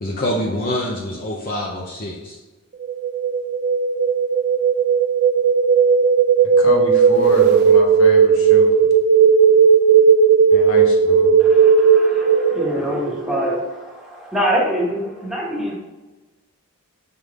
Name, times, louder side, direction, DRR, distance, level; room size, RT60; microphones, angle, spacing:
voice 1, 0.0-2.4, left 1 dB, 40° left, -4 dB, 0.9 m, -25 dB
sound 1, 2.8-12.7, right 6 dB, 50° right, 0.5 m, -15 dB
voice 2, 6.6-8.7 10.5-11.3, left 1 dB, 60° left, 0 dB, 1.3 m, -28 dB
voice 3, 11.4-15.7, equal, ahead, -5 dB, 1.6 m, -24 dB
5.8 x 5.7 x 3.6 m, 1.2 s
head